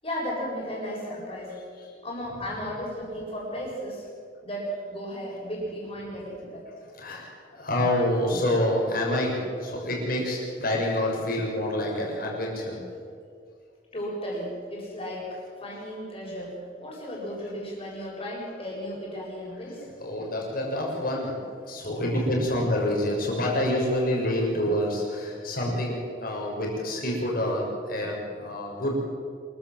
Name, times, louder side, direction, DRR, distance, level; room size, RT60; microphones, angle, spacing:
voice 1, 0.0-1.6 2.0-4.0 4.4-6.7 13.9-16.5 16.8-19.8, equal, 30° left, -4 dB, 7.8 m, -34 dB
voice 2, 7.0-7.3 7.6-12.8 20.0-21.3 21.6-29.0, left 1 dB, 50° left, -1 dB, 6.7 m, -27 dB
26.5 x 15.0 x 7.7 m, 2.2 s
head